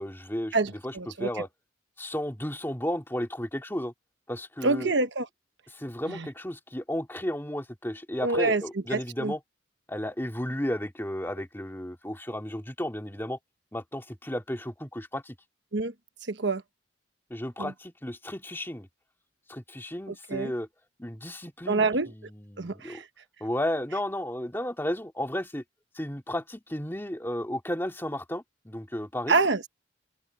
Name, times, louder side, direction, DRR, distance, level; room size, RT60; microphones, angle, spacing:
voice 1, 0.0-1.5 2.0-3.9 4.3-4.9 5.7-9.4 9.9-13.4 13.7-15.4 17.3-18.9 19.5-20.7 21.0-23.0 23.4-25.6 25.9-29.4, left 1 dB, 10° left, 2.2 m, -33 dB
voice 2, 0.5-1.3 4.6-5.3 6.1-6.3 8.2-8.6 8.9-9.3 15.7-15.9 16.3-16.6 17.6-17.7 20.1-20.5 21.7-22.1 22.6-23.1 29.3-29.7, right 3 dB, 65° right, 1.2 m, -26 dB
open air
head